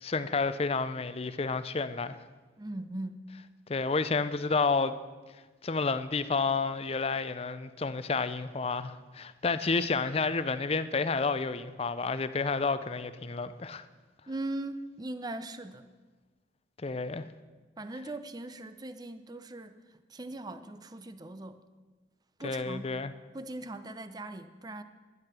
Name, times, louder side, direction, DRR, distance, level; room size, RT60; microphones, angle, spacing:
voice 1, 0.0-2.2 3.7-4.9 5.6-13.9 16.8-17.3 22.4-23.1, left 4 dB, 30° left, 0.5 m, -30 dB
voice 2, 2.6-3.2 14.3-15.9 17.8-19.8 20.1-21.6 22.4-22.9 23.3-24.8, right 2 dB, 20° right, 0.6 m, -39 dB
12.0 x 11.0 x 6.1 m
head